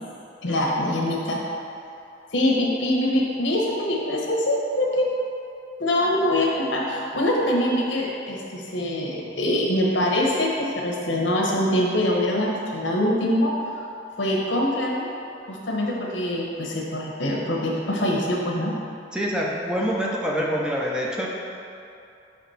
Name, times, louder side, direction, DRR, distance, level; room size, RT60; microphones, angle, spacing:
voice 1, 0.4-1.4 2.3-5.1 5.8-13.5 14.2-15.1 15.5-18.7, left 1 dB, 80° left, -2 dB, 1.0 m, -24 dB
voice 2, 19.1-21.3, equal, 5° right, -3 dB, 0.5 m, -25 dB
5.8 x 3.1 x 5.6 m, 2.6 s
head